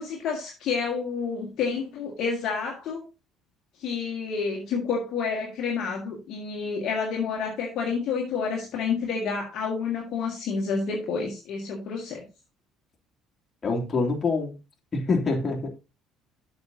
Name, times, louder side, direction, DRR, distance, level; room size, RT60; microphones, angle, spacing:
voice 1, 0.0-3.0 3.8-12.2, left 5 dB, 50° left, -1 dB, 1.8 m, -29 dB
voice 2, 13.6-14.6 14.9-15.7, left 3 dB, 30° left, 0 dB, 2.7 m, -25 dB
12.5 x 5.5 x 2.8 m, 0.28 s
figure-of-eight pair, 55°, 0 cm